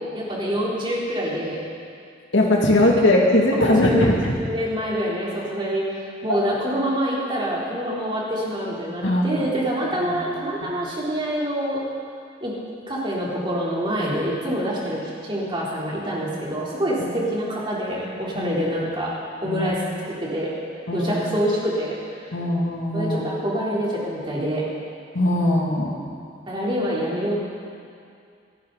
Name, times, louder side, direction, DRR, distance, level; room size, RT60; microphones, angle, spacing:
voice 1, 0.0-1.6 3.6-11.8 12.4-12.5 12.9-19.1 19.4-20.5 20.9-22.2 22.9-24.6 26.5-27.3, equal, 25° right, -6 dB, 3.6 m, -26 dB
voice 2, 2.3-4.3 6.3-6.4 9.0-9.4 10.1-10.2 10.6-10.7 17.0-17.1 18.4-18.6 19.4-19.7 20.9-21.2 22.3-23.2 25.1-25.9, left 1 dB, 85° left, -2 dB, 2.4 m, -20 dB
28.5 x 9.9 x 4.1 m, 2.3 s
head